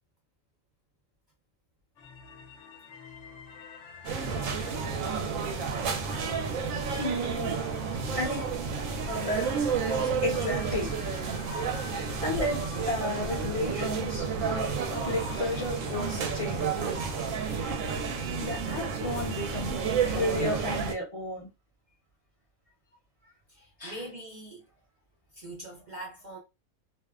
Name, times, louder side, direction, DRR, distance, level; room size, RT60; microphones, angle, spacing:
sound 1, 2.0-20.7, left 5 dB, 65° left, 1.1 m, -49 dB
sound 2, 4.0-20.9, right 5 dB, 75° right, 1.0 m, -31 dB
voice 1, 7.0-7.5 8.1-8.8 9.1-9.5 9.8-10.9 12.2-16.7 18.4-19.7 20.0-21.5 23.8-24.0, left 1 dB, 30° left, 0.7 m, -33 dB
voice 2, 23.5-24.7 25.3-26.4, right 1 dB, 55° right, 0.5 m, -42 dB
2.6 x 2.1 x 2.3 m
omnidirectional pair, 1.4 m